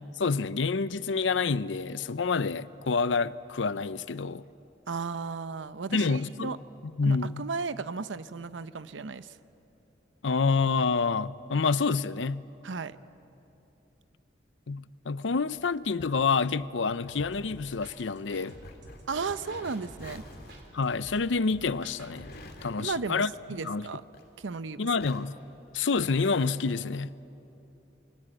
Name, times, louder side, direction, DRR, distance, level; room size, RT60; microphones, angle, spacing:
voice 1, 0.2-4.4 5.9-6.6 7.0-7.5 10.2-12.4 14.7-18.6 20.7-22.3 22.6-23.3 23.6-23.9 24.8-25.3 25.7-27.1, left 4 dB, 85° left, 0.6 m, -28 dB
voice 2, 4.9-6.6 7.0-9.4 12.6-13.0 19.1-20.2 22.8-24.0 24.4-24.8, right 4 dB, 90° right, 0.7 m, -35 dB
sound 1, 15.6-24.6 24.9-26.5, left 1 dB, 55° left, 2.5 m, -49 dB
sound 2, 17.2-22.5, right 1 dB, 65° right, 3.8 m, -50 dB
27.5 x 23.5 x 9.0 m
head